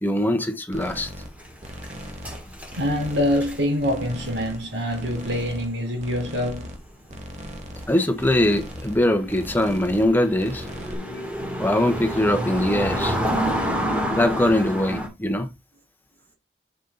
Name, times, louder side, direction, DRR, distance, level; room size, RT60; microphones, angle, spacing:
voice 1, 0.0-1.1 7.9-10.7 11.6-13.2 14.2-15.5, left 1 dB, 10° left, 1.3 m, -22 dB
sound 1, 0.7-1.3 1.6-2.4 2.7-3.5 3.8-4.6 4.9-5.7 6.0-6.8 7.1-7.9 8.2-9.0 9.3-10.1 10.4-10.9, equal, 40° right, 2.1 m, -38 dB
sound 2, 0.8-6.4 6.7-6.9 7.6-15.1, equal, 10° right, 3.3 m, -30 dB
voice 2, 2.7-6.8, equal, 85° right, 4.5 m, -25 dB
7.3 x 7.2 x 4.0 m
head